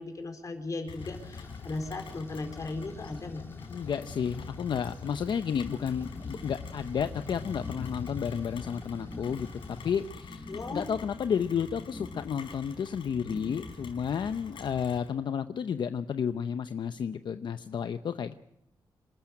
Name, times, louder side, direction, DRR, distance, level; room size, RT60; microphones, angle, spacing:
voice 1, 0.0-3.4 10.5-10.9, left 3 dB, 45° left, 6 dB, 4.4 m, -37 dB
Rain, 0.9-15.1, left 5 dB, 90° left, 4.6 m, -44 dB
sound 1, 1.0-10.1, left 2 dB, 25° left, 2.9 m, -50 dB
voice 2, 3.7-18.3, left 7 dB, 70° left, 10 dB, 0.7 m, -32 dB
sound 2, 5.6-14.2, left 1 dB, 10° left, 1.2 m, -47 dB
26.5 x 13.5 x 8.9 m, 0.82 s
wide cardioid pair, 105°, 8 cm